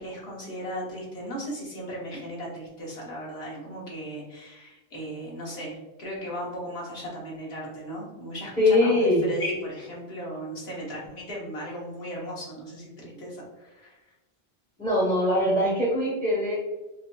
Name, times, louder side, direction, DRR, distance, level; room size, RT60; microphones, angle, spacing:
voice 1, 0.0-14.0, equal, 80° left, -4 dB, 1.4 m, -36 dB
voice 2, 8.6-9.2 14.8-16.6, left 1 dB, 5° left, -6 dB, 1.0 m, -22 dB
4.7 x 2.6 x 2.2 m, 1.1 s
omnidirectional pair, 1.0 m